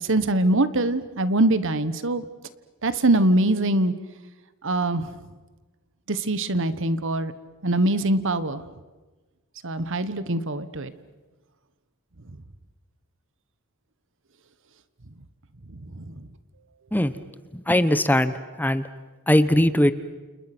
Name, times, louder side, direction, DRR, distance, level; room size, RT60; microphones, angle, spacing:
voice 1, 0.0-2.2 2.8-3.9 4.6-5.1 6.1-7.3 7.6-8.6 9.6-10.9 16.0-16.1, right 2 dB, 65° right, 13 dB, 1.3 m, -23 dB
voice 2, 17.7-18.3 18.6-18.8 19.3-19.9, left 1 dB, 10° left, 13 dB, 1.0 m, -19 dB
29.5 x 29.5 x 6.1 m, 1.2 s
head